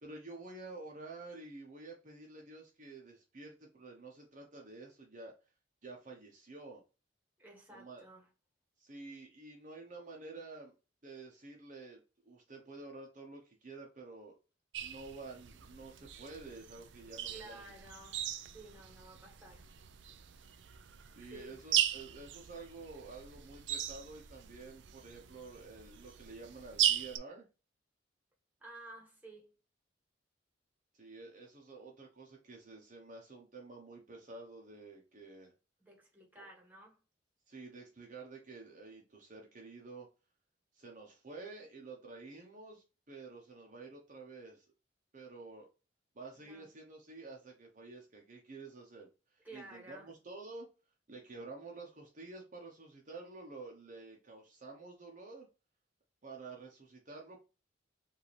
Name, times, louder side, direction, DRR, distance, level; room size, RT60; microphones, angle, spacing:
voice 1, 0.0-5.3 5.8-6.8 7.7-8.0 8.8-10.7 11.0-14.3 14.8-17.6 21.1-27.4 30.9-35.5 36.3-36.5 37.5-40.1 40.7-44.7 45.1-45.7 46.1-50.7 51.1-55.5 56.2-57.4, right 3 dB, 45° right, 0.9 m, -50 dB
voice 2, 7.4-8.3 17.3-19.6 21.2-21.6 28.6-29.5 35.8-37.0 46.4-46.7 49.4-50.1, right 2 dB, 10° right, 1.5 m, -53 dB
sound 1, 14.7-27.2, right 10 dB, 75° right, 0.4 m, -38 dB
5.0 x 2.7 x 3.3 m
head